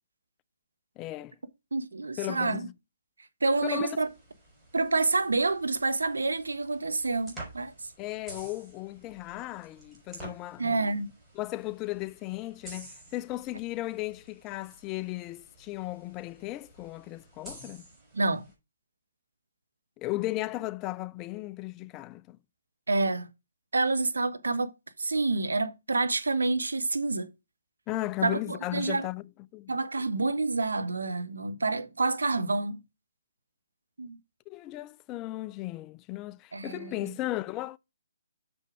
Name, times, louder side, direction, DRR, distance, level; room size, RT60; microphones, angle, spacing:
voice 1, 1.0-1.4 2.2-2.7 3.6-4.0 8.0-10.9 11.3-17.9 20.0-22.4 27.9-29.2 29.5-29.7 34.5-37.8, left 18 dB, 20° left, 0.3 m, -36 dB
voice 2, 1.7-2.7 3.4-4.1 4.7-7.9 10.6-11.1 18.1-18.4 22.9-23.3 23.7-24.7 25.0-27.3 28.2-29.1 29.7-32.8 34.0-34.2 36.5-37.1, right 3 dB, 85° right, 1.2 m, -28 dB
sound 1, 4.0-18.5, right 2 dB, 10° right, 3.9 m, -50 dB
6.5 x 5.2 x 4.7 m
hypercardioid pair, 150°, 0 cm